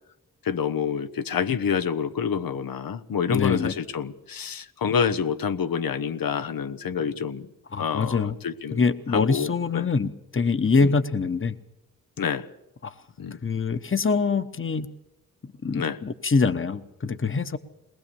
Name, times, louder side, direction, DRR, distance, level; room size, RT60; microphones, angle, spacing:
voice 1, 0.4-7.5 7.8-8.8 9.1-9.9 10.7-10.9 12.2-12.4 13.2-13.4 15.7-16.0, left 7 dB, 90° left, 11 dB, 0.9 m, -27 dB
voice 2, 3.3-3.7 7.7-8.4 8.7-11.6 12.8-12.9 13.4-14.9 15.6-17.6, left 4 dB, 40° left, 12 dB, 1.1 m, -24 dB
21.5 x 20.0 x 7.0 m, 0.94 s
wide cardioid pair, 80°, 34 cm